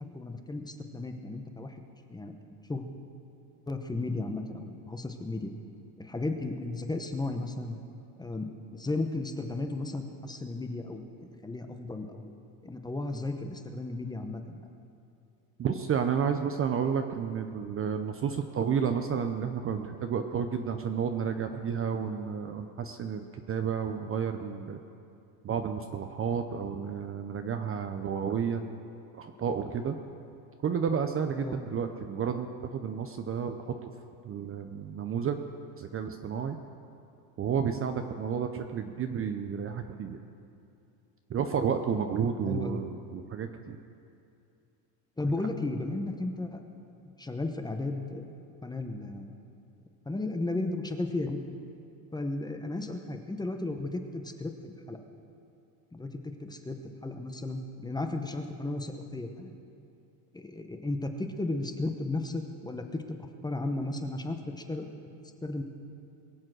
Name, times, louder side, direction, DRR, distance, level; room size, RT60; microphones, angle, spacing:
voice 1, 0.1-1.8 2.1-2.4 2.7-2.9 3.7-5.5 6.0-7.8 8.2-12.3 12.6-14.6 31.4-31.6 42.5-42.8 45.2-46.6 47.2-48.2 48.6-49.3 50.0-51.4 52.1-55.0 55.9-56.8 57.0-59.5 60.3-64.8 65.4-65.6, left 2 dB, 10° left, 5 dB, 0.9 m, -34 dB
voice 2, 15.6-24.8 25.4-28.7 29.1-30.0 30.6-33.9 34.2-35.4 35.8-36.6 37.4-40.2 41.3-43.8, right 7 dB, 30° right, 6 dB, 0.6 m, -31 dB
22.0 x 7.5 x 6.3 m, 2.6 s
supercardioid pair, 115°, 47 cm